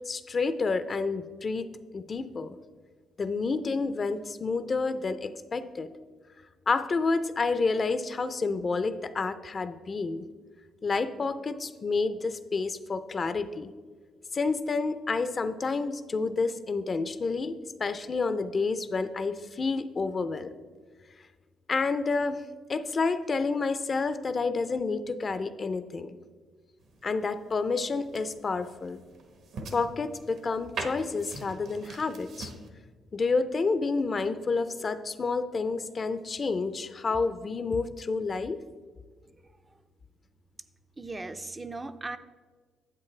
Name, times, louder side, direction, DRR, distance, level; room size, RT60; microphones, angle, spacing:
voice 1, 0.1-1.7 1.9-2.6 3.2-5.9 6.7-10.2 10.8-13.7 14.3-17.5 17.8-20.5 21.7-22.4 22.7-26.2 27.0-29.0 29.7-32.5 33.1-38.6, left 4 dB, 40° left, 12 dB, 0.4 m, -29 dB
sound 1, 26.8-32.7, right 3 dB, 70° right, 1.1 m, -43 dB
voice 2, 39.3-39.8 41.0-42.2, right 3 dB, 25° right, 9 dB, 0.4 m, -39 dB
9.7 x 8.0 x 3.2 m, 1.5 s
cardioid pair, 90°, 0 cm